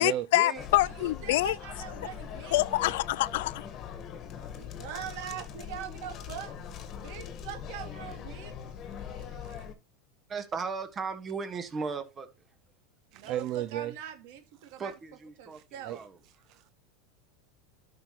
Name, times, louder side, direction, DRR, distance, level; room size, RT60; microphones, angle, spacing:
voice 1, 0.0-1.6 2.5-3.7, left 17 dB, 75° left, 0.3 m, -26 dB
sound 1, 0.6-9.7, left 8 dB, 40° left, 1.5 m, -41 dB
voice 2, 0.8-2.6 4.6-6.5 7.0-8.5 13.1-14.4 14.7-14.9 15.4-16.0, right 9 dB, 65° right, 2.3 m, -42 dB
voice 3, 8.8-9.7 13.1-14.0 14.6-14.8 15.5-16.7, right 12 dB, 50° right, 0.4 m, -37 dB
voice 4, 10.3-12.3 14.8-16.2, right 5 dB, 25° right, 1.5 m, -36 dB
11.5 x 6.1 x 3.0 m
supercardioid pair, 125°, 0 cm